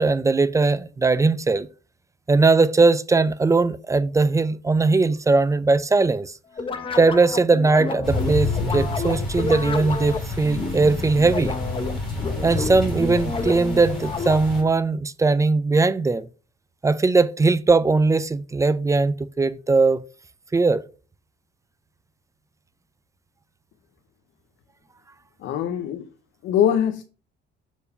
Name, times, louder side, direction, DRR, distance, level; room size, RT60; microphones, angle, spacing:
voice 1, 0.0-1.7 2.3-6.4 6.9-11.6 12.4-16.3 16.8-20.0 20.5-20.8, right 3 dB, 15° right, 0.4 m, -19 dB
sound 1, 6.6-14.7, left 4 dB, 25° left, 1.0 m, -30 dB
sound 2, 8.0-14.6, left 2 dB, ahead, 4.1 m, -29 dB
voice 2, 25.4-26.0 26.4-27.0, left 9 dB, 75° left, 0.8 m, -22 dB
6.9 x 4.6 x 5.4 m
cardioid pair, 120°, 20 cm